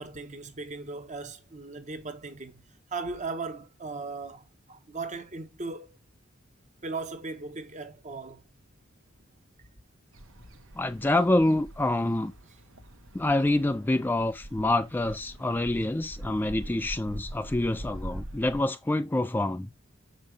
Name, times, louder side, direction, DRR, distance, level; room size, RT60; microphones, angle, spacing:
voice 1, 0.0-2.6 2.9-6.0 6.8-8.4, right 3 dB, 35° right, 1.1 m, -37 dB
sound 1, 10.1-18.6, right 1 dB, 75° right, 1.2 m, -44 dB
voice 2, 10.8-12.3 13.1-19.7, left 2 dB, 10° left, 0.3 m, -26 dB
6.7 x 5.3 x 3.3 m
head